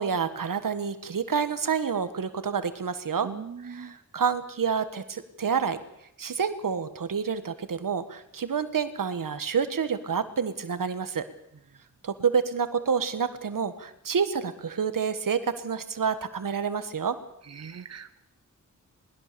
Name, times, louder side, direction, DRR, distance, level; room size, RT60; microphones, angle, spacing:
voice 1, 0.0-3.3 3.7-5.8 6.2-11.2 12.0-17.2, right 6 dB, 80° right, 11 dB, 1.6 m, -28 dB
voice 2, 3.2-4.0 17.4-18.2, right 6 dB, 50° right, 11 dB, 0.9 m, -40 dB
21.0 x 20.0 x 6.9 m, 0.81 s
wide cardioid pair, 85°, 32 cm